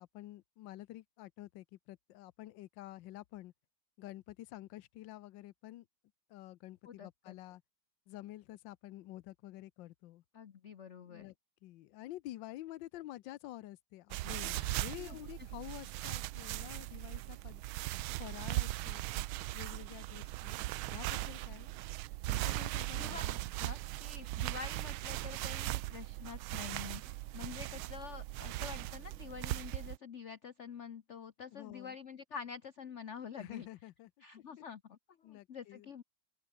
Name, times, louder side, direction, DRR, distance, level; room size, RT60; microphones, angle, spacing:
voice 1, 0.0-3.5 4.0-5.9 6.3-7.6 8.1-10.2 11.1-11.3 11.6-17.6 18.2-19.0 19.5-20.6 20.9-21.7 22.3-23.4 31.5-32.0 33.4-34.1 34.6-34.7 35.2-35.9, left 15 dB, 70° left, 1.3 m, -49 dB
voice 2, 6.8-7.4 10.3-11.3 14.4-15.2 22.9-23.3 23.6-27.0 27.3-33.7 34.2-36.0, left 6 dB, 50° left, 0.9 m, -47 dB
sound 1, 14.1-30.0, right 18 dB, 90° right, 1.4 m, -39 dB
open air
omnidirectional pair, 2.2 m